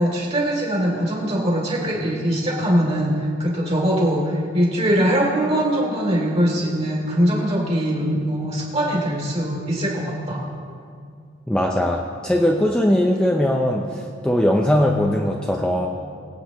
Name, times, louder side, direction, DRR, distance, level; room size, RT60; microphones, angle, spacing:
voice 1, 0.0-3.1 3.4-10.4, equal, 30° right, -2 dB, 2.9 m, -22 dB
voice 2, 11.5-15.9, equal, 5° left, 0 dB, 0.6 m, -20 dB
23.5 x 8.5 x 3.1 m, 2.3 s
head